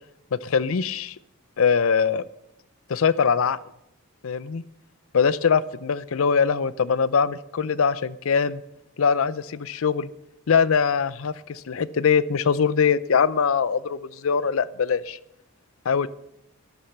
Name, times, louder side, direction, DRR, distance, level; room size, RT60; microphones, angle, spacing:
voice 1, 0.3-1.1 1.6-2.2 2.9-3.6 4.2-4.6 5.1-8.6 9.0-10.1 10.5-15.2 15.9-16.1, left 6 dB, 65° left, 18 dB, 0.5 m, -22 dB
13.0 x 11.5 x 6.7 m, 0.83 s
head